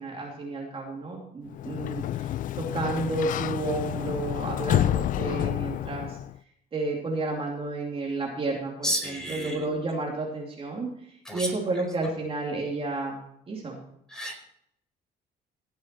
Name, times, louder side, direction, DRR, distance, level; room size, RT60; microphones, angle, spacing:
voice 1, 0.0-6.2 6.7-10.9 11.3-13.2 13.5-13.8, right 2 dB, 30° right, -1 dB, 2.7 m, -31 dB
Sliding door, 1.5-6.4, left 12 dB, 55° left, 0.4 m, -29 dB
voice 2, 8.8-9.7 11.2-11.5 14.1-14.4, equal, 5° left, 1 dB, 4.6 m, -31 dB
17.5 x 7.5 x 4.5 m, 0.73 s
cardioid pair, 110°, 17 cm